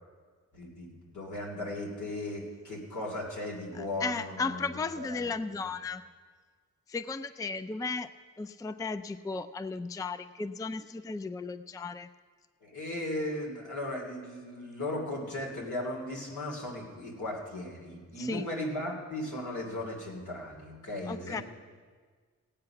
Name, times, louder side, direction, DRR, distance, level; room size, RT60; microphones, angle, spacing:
voice 1, 0.5-5.6 12.6-21.4, left 1 dB, 80° left, -1 dB, 2.8 m, -37 dB
voice 2, 3.7-6.0 6.9-8.1 8.4-12.1 18.2-18.5 21.1-21.4, left 4 dB, 10° left, 13 dB, 0.4 m, -35 dB
17.0 x 8.8 x 5.8 m, 1.6 s
wide cardioid pair, 85°, 30 cm